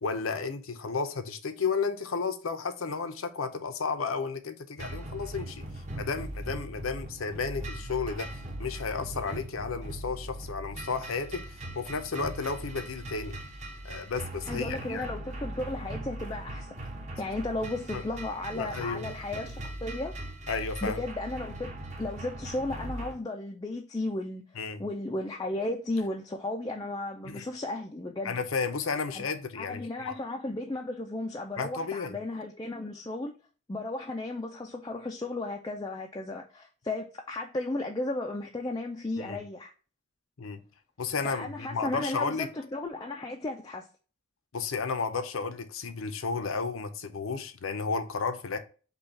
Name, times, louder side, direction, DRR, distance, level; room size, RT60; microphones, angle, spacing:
voice 1, 0.0-5.6 6.0-8.3 8.6-13.4 13.8-15.1 17.9-18.0 18.5-19.1 20.5-21.0 24.6-24.8 27.2-27.4 28.2-30.2 31.6-32.2 39.2-39.4 40.4-40.6 41.0-42.5 44.5-48.6, left 4 dB, 75° left, 0.7 m, -33 dB
sound 1, 4.8-23.1, right 1 dB, 30° right, 0.9 m, -40 dB
voice 2, 14.5-16.7 17.2-20.1 20.8-21.7 22.0-24.4 24.8-28.4 29.1-29.3 29.6-33.3 33.7-39.7 41.2-43.9, left 2 dB, 20° left, 0.4 m, -34 dB
5.4 x 2.3 x 4.1 m
head